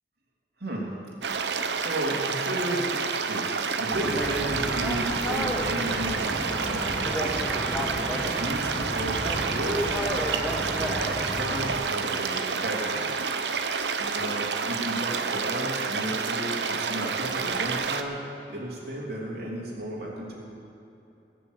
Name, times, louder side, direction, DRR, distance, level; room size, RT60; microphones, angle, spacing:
voice 1, 0.6-1.0 1.3-1.5 1.8-7.1 7.7-10.0 10.4-13.1 14.0-18.2 18.5-20.5, right 1 dB, 60° right, -3 dB, 3.1 m, -34 dB
sound 1, 1.2-18.0, right 5 dB, 80° right, 0.9 m, -29 dB
sound 2, 3.9-11.7, equal, 5° left, 1.5 m, -31 dB
20.0 x 6.9 x 8.1 m, 2.9 s
head